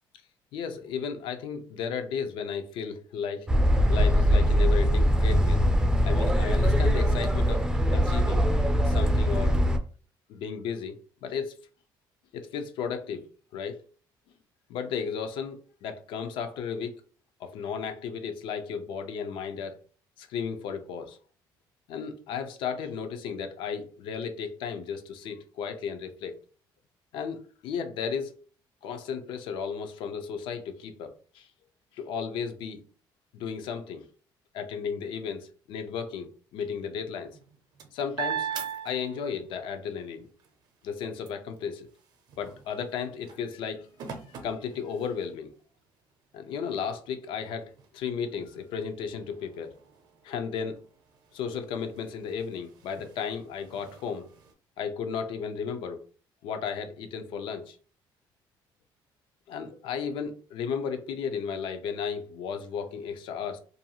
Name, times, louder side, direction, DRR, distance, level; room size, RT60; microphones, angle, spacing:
voice 1, 0.5-3.5 3.9-5.6 6.0-7.7 7.9-8.5 8.8-9.6 10.3-11.6 12.3-13.3 13.5-13.8 14.7-17.0 17.4-19.8 20.2-21.2 21.9-26.4 27.1-28.4 28.8-31.5 31.9-32.8 33.3-34.1 34.5-37.4 37.9-38.5 38.8-40.3 40.8-41.9 42.4-43.9 44.3-45.5 46.3-49.7 50.2-50.8 51.3-54.3 54.8-56.0 56.4-57.8 59.5-63.6, left 6 dB, 80° left, 0.5 m, -34 dB
sound 1, 3.5-9.8, equal, 10° right, 0.3 m, -22 dB
sound 2, 37.2-39.6 40.0-45.5 46.1-46.2 46.6-54.5, right 8 dB, 55° right, 0.5 m, -42 dB
2.5 x 2.3 x 2.8 m
cardioid pair, 145°, 8 cm